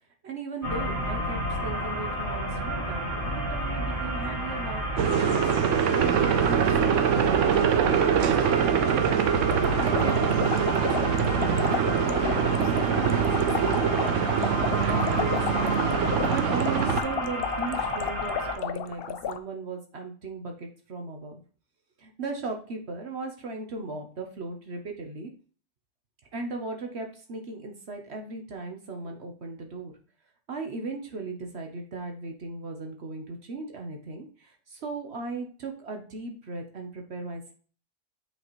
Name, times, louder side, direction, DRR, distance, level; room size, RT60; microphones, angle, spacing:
voice 1, 0.2-9.2 9.8-14.5 14.9-15.8 16.3-21.4 22.0-25.3 26.3-30.0 30.5-37.5, right 3 dB, 60° right, 3 dB, 1.2 m, -37 dB
sound 1, 0.6-18.5, equal, 45° right, 2.9 m, -32 dB
sound 2, 5.0-17.0, right 8 dB, 85° right, 1.0 m, -24 dB
sound 3, 9.4-19.4, left 9 dB, 60° left, 0.7 m, -33 dB
9.0 x 4.9 x 3.1 m, 0.41 s
omnidirectional pair, 1.3 m